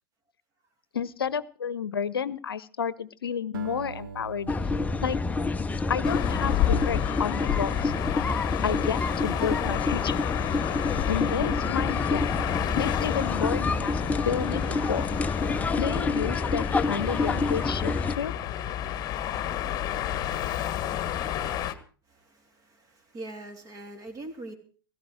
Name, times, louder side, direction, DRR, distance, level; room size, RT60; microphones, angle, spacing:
voice 1, 0.9-4.5 5.0-5.2 5.9-7.9 8.6-10.2 11.1-12.2 12.7-15.1 15.8-18.3, left 7 dB, 75° left, 17 dB, 0.8 m, -31 dB
Acoustic guitar, 3.5-8.0, right 6 dB, 65° right, 1.2 m, -45 dB
sound 1, 4.5-18.2, left 3 dB, 10° left, 0.6 m, -28 dB
sound 2, 6.0-21.7, left 11 dB, 30° left, 1.4 m, -31 dB
voice 2, 22.1-24.5, right 2 dB, 30° right, 6 dB, 3.1 m, -42 dB
17.0 x 15.0 x 4.7 m, 0.40 s
figure-of-eight pair, 95°, 12 cm